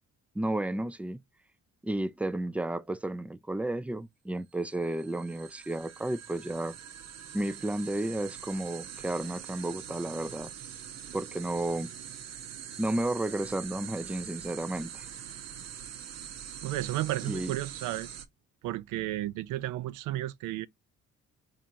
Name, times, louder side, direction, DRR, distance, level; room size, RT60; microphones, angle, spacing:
voice 1, 0.4-1.2 1.8-6.8 7.3-10.5 11.1-11.9 12.8-15.0 17.3-17.5, right 1 dB, 5° right, 0.3 m, -32 dB
sound 1, 4.6-18.3, right 9 dB, 60° right, 0.8 m, -44 dB
voice 2, 16.6-18.1 18.6-20.7, right 15 dB, 85° right, 0.4 m, -33 dB
4.3 x 2.5 x 2.6 m
cardioid pair, 90°, 30 cm